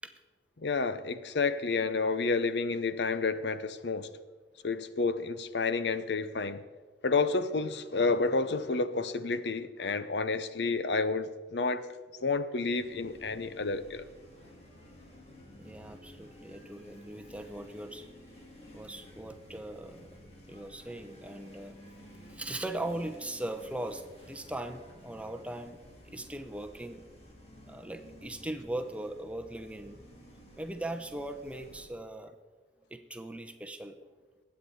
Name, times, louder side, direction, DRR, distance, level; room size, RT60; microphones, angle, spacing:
voice 1, 0.6-4.1 4.6-6.6 7.0-11.9 12.2-14.0, left 4 dB, 80° left, 0.7 m, -30 dB
sound 1, 12.7-31.9, left 1 dB, 35° left, 2.6 m, -53 dB
voice 2, 15.6-18.1 18.7-20.1 20.5-21.8 22.3-27.0 27.7-30.0 30.6-32.3 32.9-34.0, right 1 dB, 5° right, 0.7 m, -39 dB
21.0 x 8.8 x 4.3 m
head